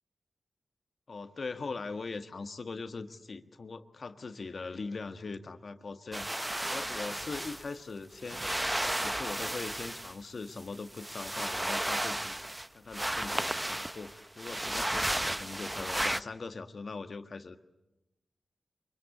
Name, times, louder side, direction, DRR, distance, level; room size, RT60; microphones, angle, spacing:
voice 1, 1.1-8.4 8.7-12.4 12.7-17.6, left 4 dB, 65° left, 8 dB, 1.5 m, -41 dB
sound 1, 6.1-7.7 8.2-10.1 10.6-12.7 12.9-16.2, right 1 dB, 15° right, 0.8 m, -33 dB
24.0 x 22.5 x 8.3 m, 0.95 s
cardioid pair, 45°, 0 cm